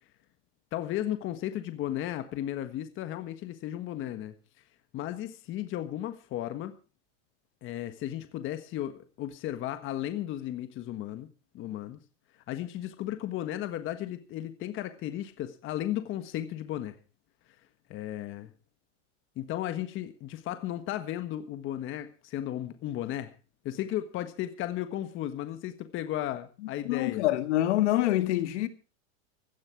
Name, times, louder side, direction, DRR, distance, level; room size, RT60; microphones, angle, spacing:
voice 1, 0.7-4.3 4.9-6.7 7.6-11.3 11.5-12.0 12.5-17.0 17.9-18.5 19.3-23.4 23.6-27.3, left 12 dB, 35° left, 1.5 m, -35 dB
voice 2, 26.8-28.7, left 15 dB, 70° left, 2.2 m, -26 dB
17.0 x 14.0 x 4.7 m
supercardioid pair, 145°, 36 cm